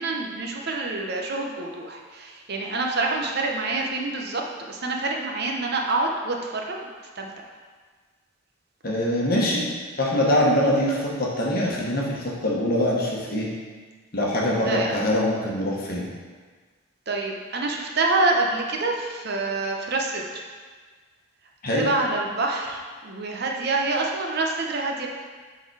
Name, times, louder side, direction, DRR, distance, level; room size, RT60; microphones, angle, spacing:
voice 1, 0.0-4.4 4.7-7.3 14.7-15.1 17.1-20.4 21.6-25.1, right 3 dB, 50° right, 1 dB, 0.7 m, -27 dB
voice 2, 8.8-9.6 10.0-13.5 14.1-16.1 21.6-21.9, left 1 dB, 45° left, -4 dB, 1.1 m, -23 dB
6.7 x 4.0 x 4.7 m, 1.5 s
head